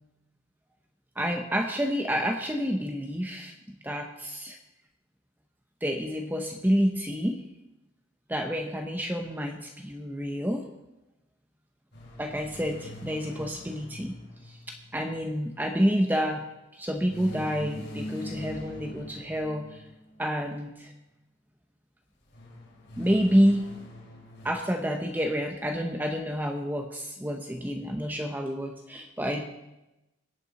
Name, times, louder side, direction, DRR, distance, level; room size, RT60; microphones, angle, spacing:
voice 1, 1.2-3.5 3.8-4.6 5.8-7.4 8.3-10.7 12.2-14.2 14.5-16.4 16.7-19.8 20.2-20.9 23.0-23.7 24.4-29.4, equal, 10° right, 3 dB, 0.9 m, -28 dB
sound 1, 11.9-15.4 17.1-20.2 22.3-24.5, left 1 dB, 65° left, 5.0 m, -43 dB
21.5 x 8.9 x 4.1 m, 0.94 s
head